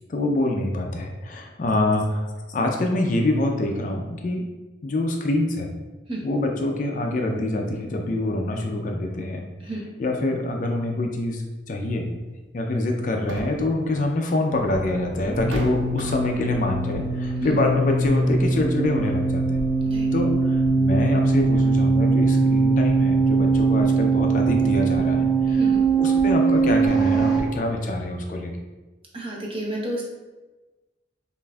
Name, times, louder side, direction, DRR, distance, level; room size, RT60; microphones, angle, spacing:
voice 1, 0.0-4.5 4.8-5.7 6.2-9.5 10.0-12.1 12.5-19.6 20.1-28.5, left 1 dB, 45° left, 2 dB, 0.4 m, -25 dB
sound 1, 11.9-12.0 13.0-13.8 14.8-14.9 15.5-16.5, right 2 dB, 75° right, 0.4 m, -35 dB
sound 2, 14.6-27.4, right 3 dB, ahead, 0.9 m, -21 dB
voice 2, 29.1-30.0, right 1 dB, 30° right, -2 dB, 0.7 m, -31 dB
5.3 x 2.5 x 2.3 m, 1.2 s
head